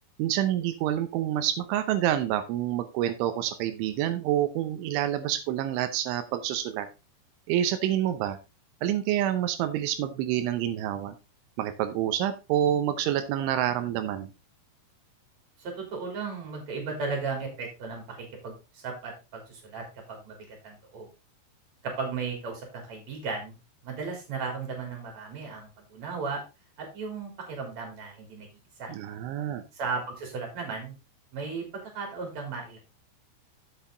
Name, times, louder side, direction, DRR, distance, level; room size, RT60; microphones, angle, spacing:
voice 1, 0.2-6.9 7.5-8.4 8.8-11.2 11.6-14.3 28.9-29.6, right 11 dB, 90° right, 9 dB, 3.3 m, -27 dB
voice 2, 15.6-21.1 21.8-23.5 23.8-26.4 26.8-28.5 28.8-28.9 29.7-30.9 31.3-32.8, right 4 dB, 40° right, 2 dB, 4.4 m, -35 dB
8.4 x 7.9 x 3.8 m, 0.27 s
omnidirectional pair, 5.3 m